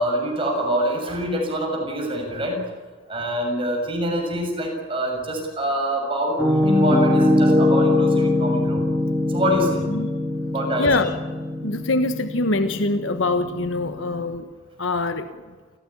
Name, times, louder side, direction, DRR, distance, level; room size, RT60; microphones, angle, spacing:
voice 1, 0.0-2.6 3.1-8.8 9.3-9.9 10.5-10.9, equal, 30° right, 1 dB, 6.7 m, -25 dB
Piano, 6.4-14.2, left 2 dB, ahead, 4.9 m, -22 dB
voice 2, 10.8-11.2 11.6-14.5 14.8-15.3, left 2 dB, 85° left, 9 dB, 1.3 m, -23 dB
28.5 x 16.0 x 9.9 m, 1.4 s
head